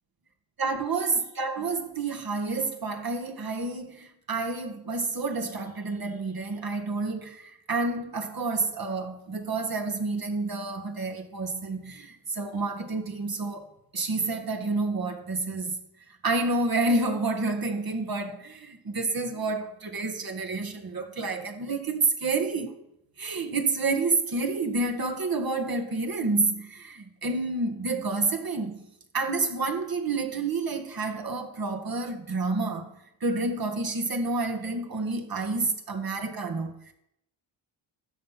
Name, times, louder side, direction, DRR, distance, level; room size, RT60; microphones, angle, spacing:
voice 1, 0.6-15.8 16.2-22.7 23.2-28.8 29.1-32.9 33.2-36.9, right 3 dB, 45° right, 1.8 m, -29 dB
15.0 x 5.8 x 6.0 m
cardioid pair, 70°, 48 cm